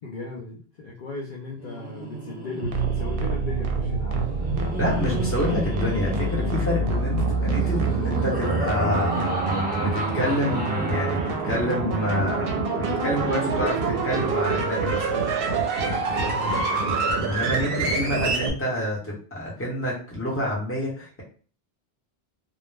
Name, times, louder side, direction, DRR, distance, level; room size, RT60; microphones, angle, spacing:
voice 1, 0.0-4.7 16.3-17.2, left 3 dB, 60° left, -3 dB, 0.6 m, -37 dB
Laughter, 1.5-12.0, right 1 dB, 10° right, 0.4 m, -34 dB
sound 1, 2.6-18.5, right 3 dB, 70° right, 0.7 m, -26 dB
voice 2, 4.8-9.1 9.8-15.1 17.2-21.2, left 1 dB, 15° left, -3 dB, 0.8 m, -28 dB
2.4 x 2.0 x 3.1 m, 0.42 s
omnidirectional pair, 1.0 m